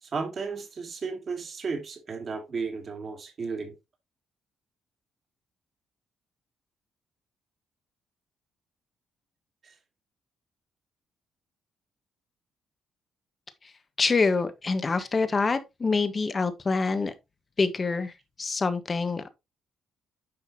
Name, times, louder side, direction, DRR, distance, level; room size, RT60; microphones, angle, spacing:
voice 1, 0.0-3.7 9.6-9.7, right 4 dB, 45° right, 2.9 m, -34 dB
voice 2, 14.0-17.1 17.6-18.1 18.4-19.3, left 4 dB, 30° left, 1.4 m, -26 dB
9.8 x 5.8 x 2.9 m
cardioid pair, 90°, 0 cm